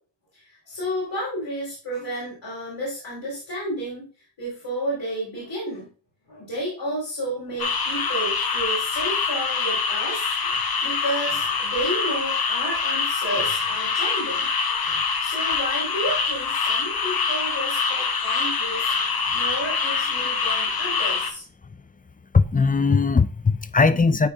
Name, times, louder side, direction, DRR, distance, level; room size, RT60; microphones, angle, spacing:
voice 1, 0.3-4.1 4.4-5.9 6.3-14.5 14.8-19.0 19.3-21.4, right 1 dB, 85° left, 3.3 m, -31 dB
sound 1, 7.6-21.3, left 5 dB, 55° left, 0.9 m, -25 dB
voice 2, 22.3-24.3, left 4 dB, 20° left, 0.4 m, -19 dB
9.9 x 4.4 x 2.3 m
wide cardioid pair, 80°, 43 cm